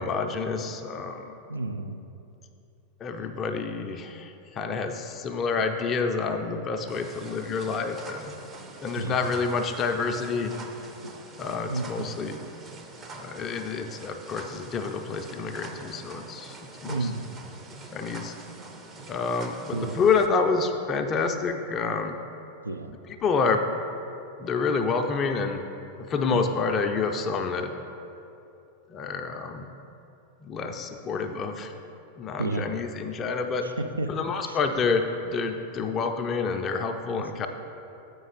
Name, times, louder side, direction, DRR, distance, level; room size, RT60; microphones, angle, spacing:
voice 1, 0.0-1.3 3.0-8.4 8.8-10.5 11.4-12.4 13.1-17.1 17.9-18.3 19.1-22.2 23.2-23.6 24.4-25.6 26.0-27.7 28.9-29.7 30.4-31.7 32.2-33.6 34.1-37.5, left 4 dB, 30° left, 5 dB, 0.4 m, -28 dB
voice 2, 1.5-2.0 9.0-9.2 11.0-11.1 11.7-12.1 16.8-17.3 19.7-20.0 22.6-22.9 26.3-26.5 32.4-32.7 33.6-34.1 34.4-34.6 35.8-36.0 37.1-37.2, right 2 dB, 80° right, 7 dB, 0.4 m, -31 dB
sound 1, 6.9-20.3, right 3 dB, 20° right, 0.6 m, -45 dB
7.6 x 5.2 x 4.0 m, 2.7 s
figure-of-eight pair, 90°, 0 cm